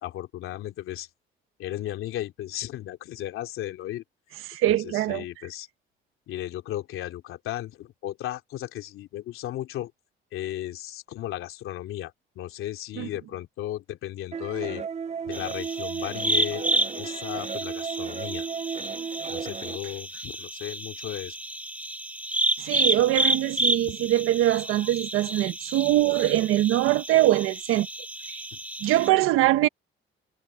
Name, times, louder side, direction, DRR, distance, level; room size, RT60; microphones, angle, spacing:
voice 1, 0.0-1.1 1.6-4.0 4.7-5.7 6.3-9.9 10.3-14.8 15.2-16.7 17.0-18.5 19.3-21.4 23.9-24.0 28.5-28.6, left 13 dB, 80° left, 3.1 m, -35 dB
voice 2, 4.5-5.2 13.0-13.1 22.6-27.9 28.3-28.5 28.8-29.7, right 15 dB, 90° right, 1.3 m, -23 dB
sound 1, 14.3-19.8, right 6 dB, 30° right, 0.6 m, -34 dB
sound 2, 15.3-29.1, right 1 dB, 5° right, 1.4 m, -30 dB
cardioid pair, 95°, 21 cm